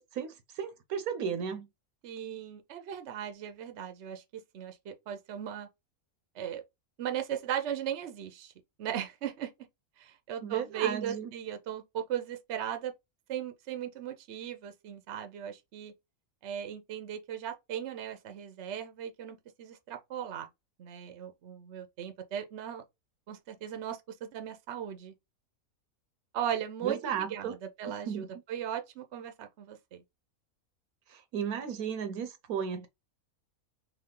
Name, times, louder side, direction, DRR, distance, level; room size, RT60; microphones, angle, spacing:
voice 1, 0.0-1.7 10.4-11.3 26.8-27.6 27.9-28.3 31.1-32.9, right 7 dB, 75° right, 1.2 m, -35 dB
voice 2, 2.0-5.7 6.3-6.6 7.0-8.5 8.8-9.5 10.0-12.9 13.3-15.9 16.4-20.5 20.8-22.8 23.3-25.2 26.3-30.0, right 9 dB, 55° right, 0.9 m, -37 dB
3.5 x 3.2 x 3.7 m
omnidirectional pair, 1.6 m